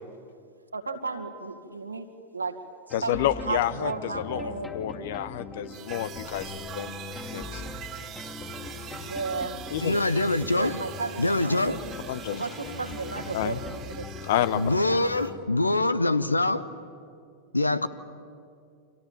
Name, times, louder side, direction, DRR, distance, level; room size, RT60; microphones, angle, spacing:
voice 1, 0.7-2.6 2.9-4.7 9.0-9.6 10.5-11.8 12.3-14.1, right 4 dB, 80° right, 2.1 m, -34 dB
voice 2, 2.9-4.4 4.7-7.0 7.3-7.6 9.7-10.0 12.1-12.4 13.3-13.6 14.3-14.6, left 12 dB, 55° left, 1.0 m, -29 dB
sound 1, 2.9-15.4, left 3 dB, 15° left, 2.6 m, -41 dB
sound 2, 5.7-15.3, right 10 dB, 30° right, 2.2 m, -44 dB
voice 3, 9.8-10.7 11.2-11.8 14.5-16.7 17.5-17.9, left 2 dB, 85° left, 1.0 m, -24 dB
29.0 x 26.0 x 7.4 m
figure-of-eight pair, 90°, 0 cm